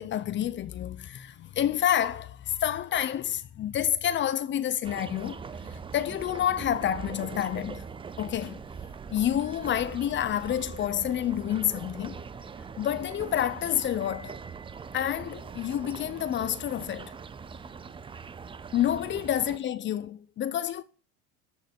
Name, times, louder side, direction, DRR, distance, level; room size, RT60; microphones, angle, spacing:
voice 1, 0.0-5.4 5.7-7.9 8.2-8.6 9.1-12.2 12.8-14.4 14.9-17.2 18.7-20.8, left 10 dB, 35° left, 0.6 m, -29 dB
sound 1, 4.8-19.6, right 5 dB, 15° right, 0.5 m, -42 dB
13.5 x 5.4 x 4.4 m
supercardioid pair, 115°, 33 cm